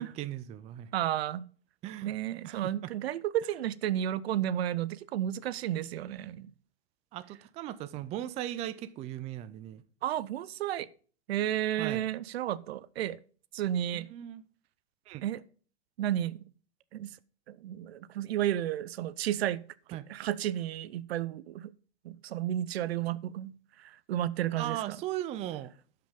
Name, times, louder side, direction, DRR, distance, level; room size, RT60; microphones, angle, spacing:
voice 1, 0.0-0.9 1.8-2.1 2.4-2.9 7.1-9.8 11.8-12.0 13.9-14.4 15.1-15.3 19.9-20.1 24.6-25.7, right 13 dB, 20° right, 0.4 m, -38 dB
voice 2, 0.9-1.5 2.0-6.5 10.0-10.9 11.3-13.2 13.5-14.1 15.2-15.4 16.0-16.5 16.9-17.1 17.5-21.7 22.0-25.0, right 12 dB, 65° right, 0.7 m, -32 dB
12.0 x 5.7 x 5.1 m
hypercardioid pair, 130°, 33 cm